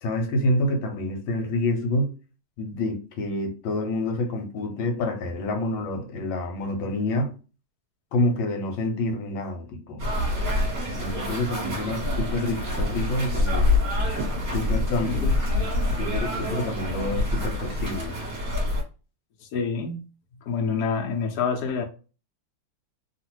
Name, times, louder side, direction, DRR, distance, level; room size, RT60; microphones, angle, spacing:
voice 1, 0.0-2.1 2.6-7.3 8.1-10.0 11.0-13.7 14.5-15.2 15.6-15.7 16.0-18.1, left 1 dB, 80° left, 1.5 m, -27 dB
sound 1, 10.0-18.8, left 2 dB, 35° right, 1.3 m, -26 dB
voice 2, 15.0-15.3 19.4-20.0 20.5-21.8, left 5 dB, 65° left, 1.1 m, -27 dB
3.1 x 2.5 x 2.9 m
omnidirectional pair, 2.1 m